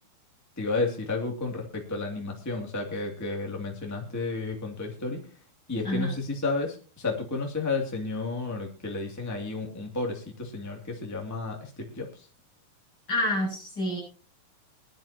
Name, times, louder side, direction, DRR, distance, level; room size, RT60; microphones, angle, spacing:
voice 1, 0.6-5.2 5.7-12.1, left 3 dB, 5° left, 1 dB, 1.7 m, -32 dB
voice 2, 5.8-6.2 13.1-14.0, left 1 dB, 25° left, -2 dB, 8.4 m, -28 dB
21.5 x 12.0 x 2.9 m, 0.35 s
omnidirectional pair, 4.3 m